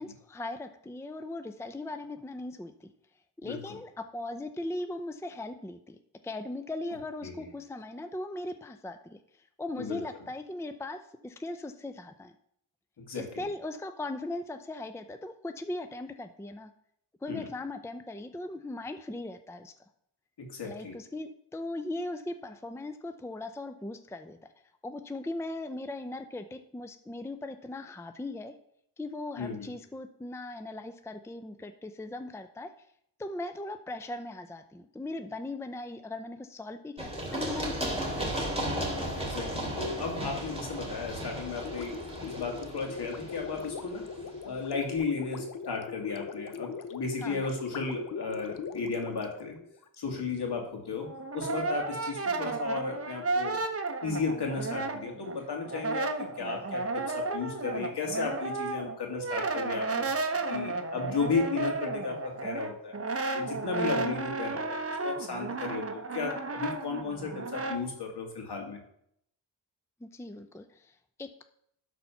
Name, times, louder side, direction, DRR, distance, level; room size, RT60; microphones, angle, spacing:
voice 1, 0.0-2.9 3.4-6.0 6.2-12.3 13.1-16.7 17.2-19.7 20.6-24.4 24.8-28.5 29.0-32.7 33.2-38.4 47.2-47.5 70.0-71.4, left 2 dB, 5° left, 8 dB, 0.6 m, -39 dB
voice 2, 13.0-13.4 17.3-17.5 20.4-21.0 29.4-29.7 39.2-42.0 42.3-44.1 44.4-49.6 50.0-53.6 54.0-56.1 56.4-60.1 60.5-63.0 63.3-68.8, left 4 dB, 65° left, 1 dB, 2.5 m, -34 dB
Run, 37.0-44.6, equal, 15° right, 3.0 m, -35 dB
Gurgling, 41.6-50.0, left 5 dB, 50° left, 0.8 m, -41 dB
Brass instrument, 50.9-55.4 55.6-67.8, right 3 dB, 35° right, 1.0 m, -33 dB
12.0 x 4.2 x 5.9 m, 0.72 s
cardioid pair, 80°, 43 cm